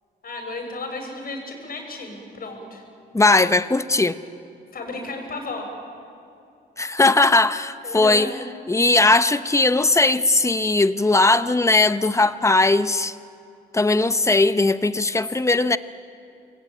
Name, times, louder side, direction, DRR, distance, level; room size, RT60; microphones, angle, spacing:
voice 1, 0.2-2.8 4.7-5.7 7.8-8.3, left 2 dB, 50° left, 3 dB, 6.5 m, -33 dB
voice 2, 3.1-4.2 6.8-8.3 8.7-13.1 13.7-15.8, left 2 dB, 15° left, 12 dB, 0.9 m, -18 dB
27.5 x 21.5 x 8.8 m, 2.6 s
cardioid pair, 90°, 20 cm